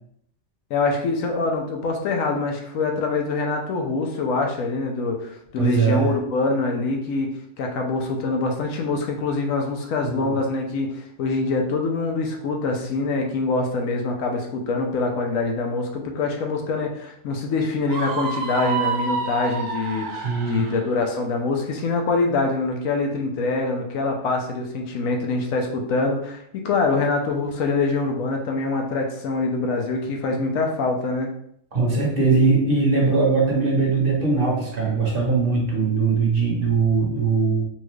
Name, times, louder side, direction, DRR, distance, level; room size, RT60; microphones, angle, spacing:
voice 1, 0.7-31.3, left 3 dB, 90° left, 2 dB, 1.1 m, -24 dB
voice 2, 5.6-6.1 10.0-10.3 20.2-20.6 31.7-37.6, right 4 dB, 45° right, -3 dB, 1.1 m, -21 dB
Screaming, 17.9-20.8, right 5 dB, 75° right, 1.1 m, -28 dB
4.3 x 2.3 x 3.1 m, 0.71 s
omnidirectional pair, 1.4 m